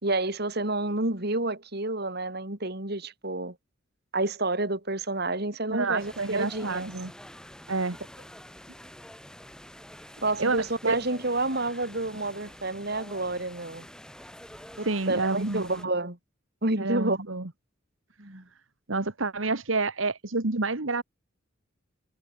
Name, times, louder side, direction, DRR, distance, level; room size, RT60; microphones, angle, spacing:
voice 1, 0.0-3.5 4.1-6.9 10.2-13.9 14.8-16.2 16.6-17.2 18.2-18.4, right 2 dB, 55° right, 3.3 m, -29 dB
voice 2, 5.7-7.1 7.7-8.0 10.4-11.0 14.8-15.9 16.8-17.5 18.9-21.0, right 3 dB, 80° right, 1.8 m, -28 dB
sound 1, 6.0-15.9, equal, 5° left, 4.4 m, -47 dB
head